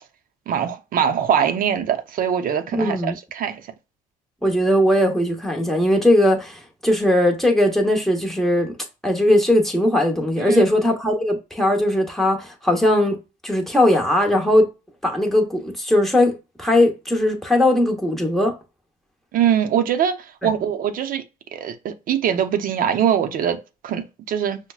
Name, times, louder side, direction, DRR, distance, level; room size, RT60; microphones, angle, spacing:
voice 1, 0.5-3.6 10.4-10.6 19.3-21.2 21.5-24.6, right 8 dB, 55° right, 0.7 m, -22 dB
voice 2, 2.7-3.2 4.4-8.8 9.0-13.2 13.4-14.7 15.0-18.5, left 1 dB, ahead, 1.0 m, -19 dB
5.9 x 2.1 x 2.3 m
cardioid pair, 110°, 17 cm